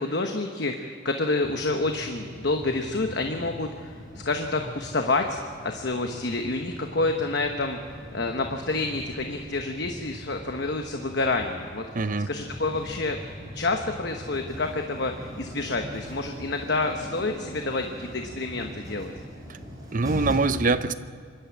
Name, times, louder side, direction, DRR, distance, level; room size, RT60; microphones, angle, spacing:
voice 1, 0.0-19.1, left 2 dB, 55° left, 4 dB, 1.1 m, -28 dB
sound 1, 1.4-20.3, equal, 20° right, 5.0 m, -41 dB
voice 2, 11.9-12.3 19.5-19.6 19.9-20.9, right 3 dB, 40° right, 12 dB, 0.6 m, -24 dB
25.5 x 12.0 x 8.6 m, 2.2 s
head